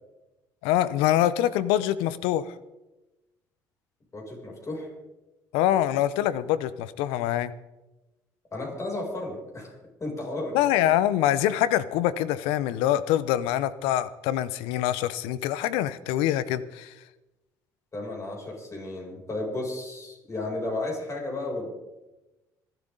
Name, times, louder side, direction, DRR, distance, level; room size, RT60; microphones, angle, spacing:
voice 1, 0.6-2.4 5.5-7.5 10.5-16.9, left 12 dB, 80° left, 17 dB, 0.7 m, -25 dB
voice 2, 4.1-4.9 8.5-9.7 10.0-10.6 17.9-21.7, left 2 dB, 35° left, -1 dB, 6.7 m, -33 dB
26.0 x 9.2 x 3.9 m, 1.0 s
hypercardioid pair, 60°, 9 cm